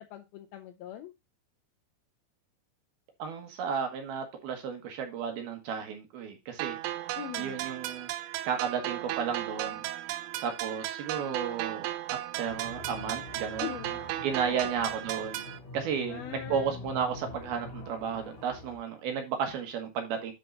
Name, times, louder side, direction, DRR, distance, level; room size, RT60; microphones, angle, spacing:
voice 1, 0.1-1.1 7.1-7.7 13.6-14.0 14.5-14.8 16.1-16.8, left 11 dB, 85° left, 2.2 m, -41 dB
voice 2, 3.2-6.8 7.4-8.1 8.4-9.8 10.4-11.9 12.4-13.8 14.2-15.5 15.7-20.3, right 7 dB, 70° right, 3.0 m, -33 dB
sound 1, 6.6-15.6, right 14 dB, 90° right, 3.0 m, -36 dB
sound 2, 12.5-18.8, left 2 dB, 50° left, 3.3 m, -45 dB
10.5 x 4.7 x 4.0 m
omnidirectional pair, 5.1 m